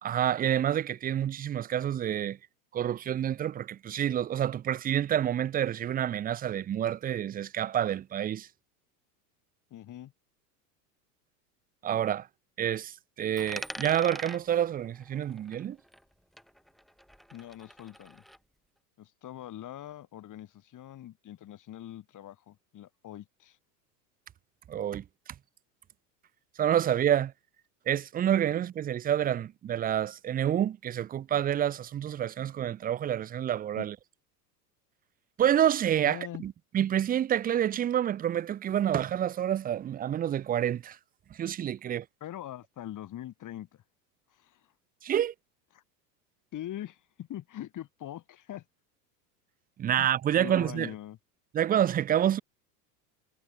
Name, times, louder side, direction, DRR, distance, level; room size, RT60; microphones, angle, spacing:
voice 1, 0.0-2.4 2.7-8.5 11.8-12.3 12.6-15.8 24.7-25.0 26.6-27.3 27.9-34.0 35.4-41.0 41.3-42.1 45.0-45.3 49.8-50.9 51.5-52.4, right 10 dB, 20° right, 0.5 m, -28 dB
voice 2, 9.7-10.1 17.3-18.2 19.0-23.6 33.7-33.9 36.0-36.4 42.2-43.8 44.3-44.6 45.7-45.8 46.5-48.6 49.9-50.1 50.3-51.2, left 12 dB, 40° left, 6.5 m, -42 dB
Coin (dropping), 13.4-16.1 16.4-18.4, equal, ahead, 4.9 m, -45 dB
hypercardioid pair, 100°, 48 cm